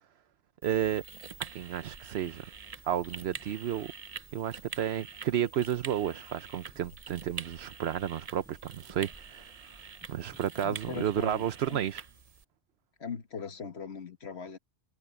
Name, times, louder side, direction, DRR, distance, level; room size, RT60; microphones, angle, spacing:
sound 1, 0.6-12.4, right 6 dB, 40° right, 0.7 m, -46 dB
voice 1, 0.6-1.0 1.5-2.4 2.8-3.9 4.3-9.5 10.1-12.0, right 10 dB, 80° right, 1.0 m, -32 dB
sound 2, 2.2-12.0, equal, 10° right, 7.7 m, -61 dB
voice 2, 10.6-11.9 13.0-14.6, left 6 dB, 90° left, 1.7 m, -40 dB
omnidirectional pair, 1.1 m